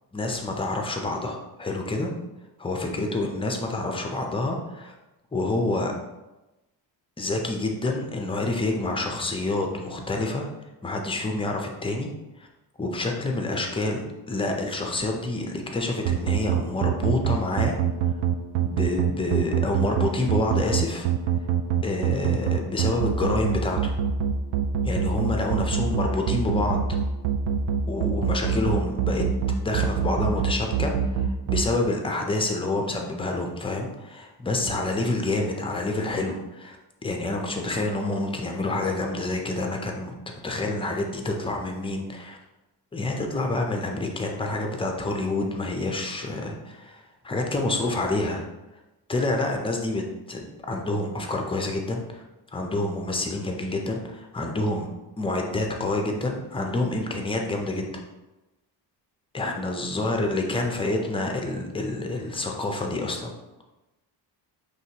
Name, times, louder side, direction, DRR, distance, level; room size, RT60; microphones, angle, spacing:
voice 1, 0.1-2.1 2.6-4.9 5.3-5.9 7.2-10.5 10.8-12.1 12.4-12.5 12.8-17.8 18.6-21.1 21.8-24.0 24.8-26.8 27.9-29.2 29.6-36.8 37.0-40.1 40.4-42.4 42.9-48.4 49.1-50.0 50.3-52.2 52.5-54.9 55.2-58.0 59.3-63.3, left 2 dB, 15° left, 2 dB, 0.4 m, -28 dB
sound 1, 16.1-31.6, right 9 dB, 90° right, 0.6 m, -24 dB
5.9 x 3.1 x 2.8 m, 1.0 s
cardioid pair, 165°, 43 cm